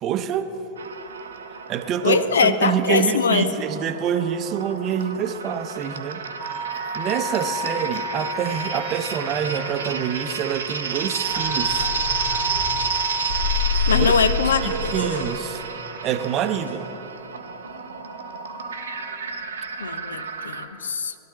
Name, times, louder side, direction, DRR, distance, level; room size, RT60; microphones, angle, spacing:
voice 1, 0.0-0.5 1.7-6.2 6.9-11.9 13.9-14.1 14.6-15.6 16.0-16.9, right 8 dB, 35° right, 9 dB, 0.7 m, -26 dB
sound 1, 0.8-20.7, right 6 dB, 70° right, 0.9 m, -32 dB
voice 2, 2.0-3.5 13.9-14.9 19.8-21.1, left 5 dB, 70° left, 12 dB, 0.6 m, -22 dB
sound 2, 6.4-14.3, left 1 dB, 30° left, 2.1 m, -32 dB
sound 3, 11.3-12.9 13.3-17.3 17.6-19.1, left 4 dB, 90° left, 1.9 m, -29 dB
20.0 x 12.5 x 3.2 m, 3.0 s
figure-of-eight pair, 90°, 0 cm